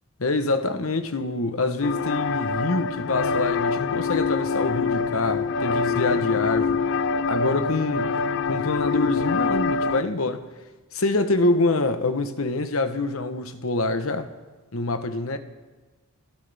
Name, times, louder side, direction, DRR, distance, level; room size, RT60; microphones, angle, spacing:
voice 1, 0.2-6.8 7.3-10.5 10.9-14.3 14.7-15.4, left 2 dB, 75° left, 1.1 m, -25 dB
sound 1, 1.8-10.0, left 5 dB, 60° left, 0.4 m, -25 dB
29.0 x 13.0 x 3.5 m
head